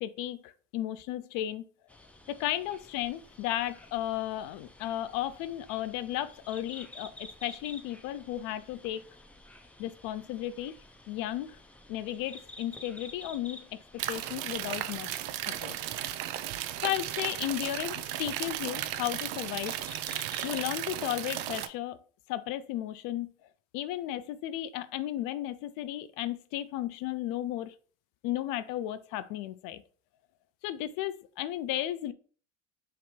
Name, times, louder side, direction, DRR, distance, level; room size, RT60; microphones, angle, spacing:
voice 1, 0.0-1.6 2.3-9.0 9.8-10.8 11.1-11.6 11.9-13.8 14.1-15.2 15.5-15.8 16.8-19.7 20.4-22.0 22.3-23.3 23.7-27.7 28.2-29.8 30.6-32.1, left 13 dB, 65° left, 0.5 m, -34 dB
sound 1, 1.9-20.6, left 1 dB, 5° left, 0.4 m, -52 dB
sound 2, 14.0-21.7, right 13 dB, 70° right, 0.5 m, -35 dB
3.1 x 3.0 x 4.4 m
supercardioid pair, 115°, 36 cm